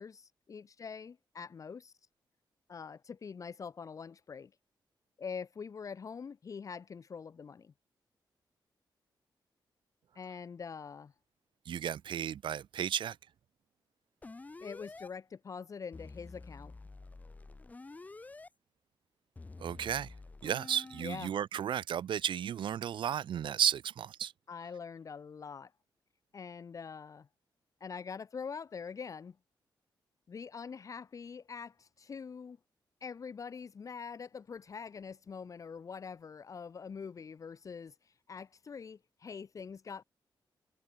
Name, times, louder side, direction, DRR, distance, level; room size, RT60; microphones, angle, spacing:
voice 1, 0.0-1.9 2.7-4.5 5.2-7.7 10.1-11.1 14.6-16.7 21.0-21.3 24.5-25.7 26.3-27.3 27.8-29.4 30.3-32.6 33.0-40.0, left 6 dB, 40° left, 1.3 m, -44 dB
voice 2, 11.7-13.2 19.6-20.1 20.4-24.3, right 9 dB, 80° right, 1.2 m, -33 dB
sound 1, 14.2-15.1 15.9-18.5 19.4-21.0, left 3 dB, 20° left, 0.8 m, -49 dB
wide cardioid pair, 140°, 8 cm